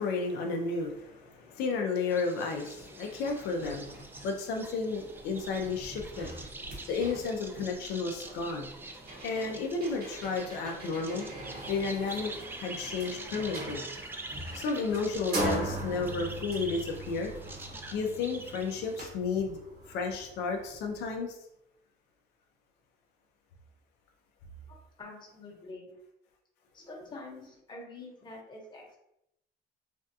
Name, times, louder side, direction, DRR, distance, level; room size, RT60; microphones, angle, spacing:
voice 1, 0.0-4.0 4.2-6.3 6.9-8.7 9.2-11.2 11.7-12.3 12.6-13.8 14.5-17.3 17.9-19.6 19.9-21.4, left 4 dB, 85° left, 2 dB, 0.5 m, -32 dB
sound 1, 2.1-19.1, right 2 dB, 15° right, 0.3 m, -45 dB
sound 2, 2.8-2.9 3.2-21.2, right 1 dB, 65° right, 1.2 m, -41 dB
voice 2, 24.7-25.9 26.7-29.0, left 2 dB, 25° left, -1 dB, 0.9 m, -46 dB
3.3 x 2.2 x 2.7 m, 0.81 s
cardioid pair, 110°, 17 cm